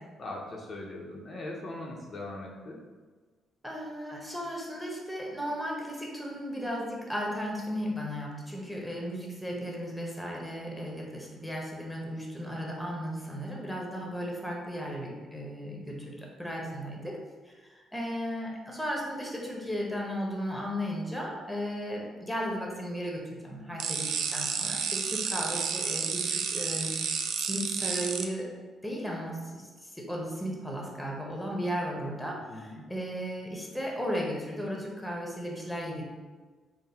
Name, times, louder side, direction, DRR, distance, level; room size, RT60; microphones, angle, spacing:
voice 1, 0.2-2.8 32.5-32.9, left 2 dB, 45° left, -2 dB, 0.6 m, -40 dB
voice 2, 3.6-17.2 17.5-27.0 27.5-28.5 28.8-36.0, equal, 5° left, -2 dB, 0.8 m, -35 dB
sound 1, 23.8-28.2, right 6 dB, 75° right, 0.3 m, -31 dB
3.9 x 2.1 x 4.0 m, 1.4 s
cardioid pair, 90°, 0 cm